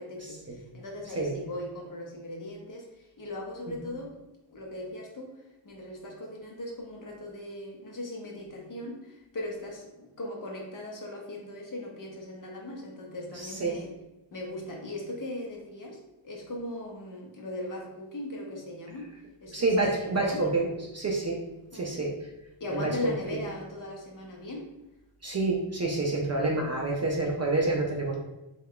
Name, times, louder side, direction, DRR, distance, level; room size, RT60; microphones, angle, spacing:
voice 1, 0.0-4.1 4.5-13.9 14.3-16.0 16.2-19.1 19.4-19.9 20.2-20.4 21.7-22.0 22.6-24.7, left 1 dB, 40° left, -1 dB, 0.7 m, -39 dB
voice 2, 13.3-13.8 19.5-20.7 20.9-21.4 21.7-22.1 22.7-23.4 25.2-28.2, right 2 dB, 35° right, -1 dB, 0.4 m, -28 dB
3.2 x 2.3 x 3.5 m, 0.95 s
wide cardioid pair, 160°, 50 cm